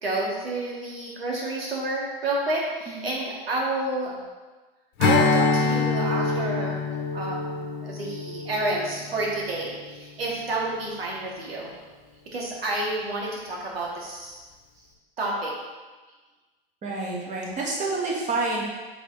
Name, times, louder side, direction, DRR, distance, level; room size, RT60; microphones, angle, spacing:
voice 1, 0.0-4.1 5.0-6.8 7.1-11.7 12.3-14.4 15.2-15.5, right 2 dB, 75° right, -2 dB, 1.9 m, -29 dB
Strum, 5.0-9.8, left 4 dB, 50° left, 1.1 m, -25 dB
voice 2, 16.8-18.6, right 3 dB, 25° right, -3 dB, 1.8 m, -28 dB
7.6 x 4.9 x 3.2 m, 1.3 s
figure-of-eight pair, 95°, 30 cm